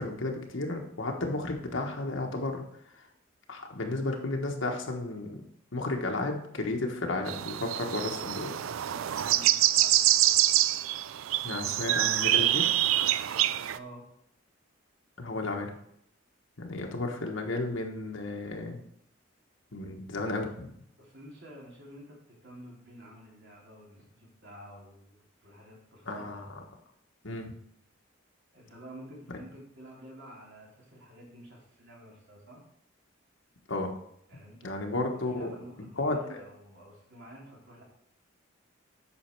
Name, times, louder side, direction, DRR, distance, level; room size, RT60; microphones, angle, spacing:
voice 1, 0.0-2.6 3.0-3.1 3.5-5.4 5.7-8.7 11.4-12.7 15.2-15.7 16.6-18.8 19.7-20.7 26.0-26.6 27.2-27.5 33.7-33.9 34.6-35.5 35.8-36.4, left 2 dB, 75° left, 2 dB, 1.3 m, -33 dB
sound 1, 7.3-13.8, right 13 dB, 85° right, 0.4 m, -26 dB
voice 2, 8.8-10.3 13.7-14.0 21.0-26.4 28.5-32.6 34.3-34.7 35.2-37.8, right 1 dB, 60° right, -3 dB, 3.2 m, -50 dB
8.6 x 6.2 x 4.5 m, 0.72 s
head